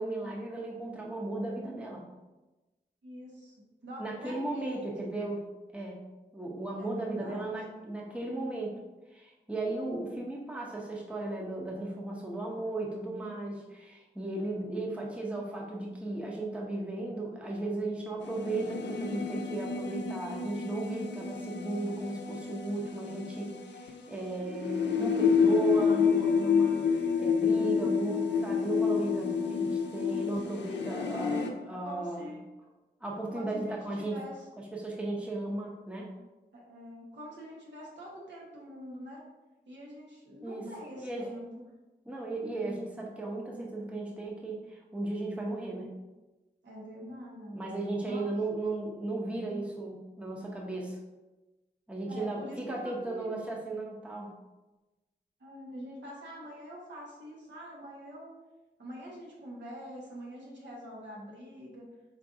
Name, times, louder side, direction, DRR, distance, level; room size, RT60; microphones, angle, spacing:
voice 1, 0.0-2.0 4.0-5.4 5.7-6.0 6.3-8.8 9.1-32.3 33.0-34.2 34.7-36.1 40.4-40.6 41.0-41.3 42.1-45.9 47.5-51.0 51.9-54.3, right 2 dB, 5° right, -2 dB, 0.7 m, -35 dB
voice 2, 3.0-4.9 6.8-7.6 30.7-31.5 31.8-32.4 33.3-34.5 36.5-39.2 39.7-41.5 46.6-47.8 48.0-48.3 52.1-53.5 55.4-58.3 58.8-61.9, equal, 80° right, -4 dB, 1.3 m, -45 dB
sound 1, 18.2-31.5, left 6 dB, 85° left, 0.5 m, -29 dB
4.6 x 3.8 x 2.6 m, 1.1 s
wide cardioid pair, 115°, 18 cm